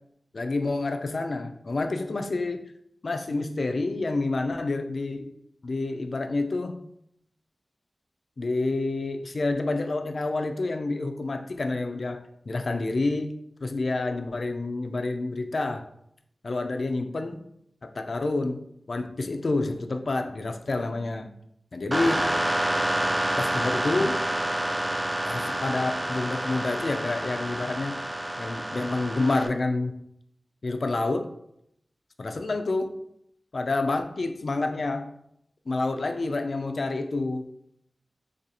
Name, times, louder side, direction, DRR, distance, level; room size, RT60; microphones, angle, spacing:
voice 1, 0.3-2.6 3.0-5.3 5.6-6.8 8.4-13.3 13.6-15.9 16.4-17.4 17.8-21.3 21.7-22.3 23.4-24.2 25.2-28.0 28.4-29.9 30.6-31.3 32.2-32.9 33.5-35.1 35.7-37.4, left 2 dB, 65° left, 7 dB, 0.4 m, -28 dB
sound 1, 21.9-29.5, right 1 dB, 20° right, 0.4 m, -28 dB
4.2 x 2.7 x 2.6 m, 0.74 s
cardioid pair, 50°, 0 cm